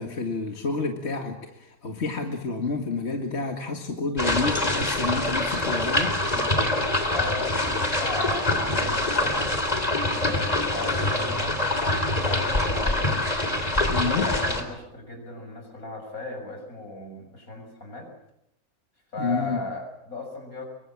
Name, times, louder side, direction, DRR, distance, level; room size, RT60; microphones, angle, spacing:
voice 1, 0.0-6.2 13.9-14.3 19.2-19.6, left 3 dB, 45° left, 3 dB, 2.2 m, -29 dB
sound 1, 4.2-14.6, left 1 dB, 25° left, 3.4 m, -25 dB
voice 2, 7.1-9.6 10.2-13.0 13.9-18.1 19.1-20.7, left 2 dB, 70° left, 3 dB, 7.2 m, -36 dB
26.0 x 23.0 x 7.5 m, 0.80 s
omnidirectional pair, 1.5 m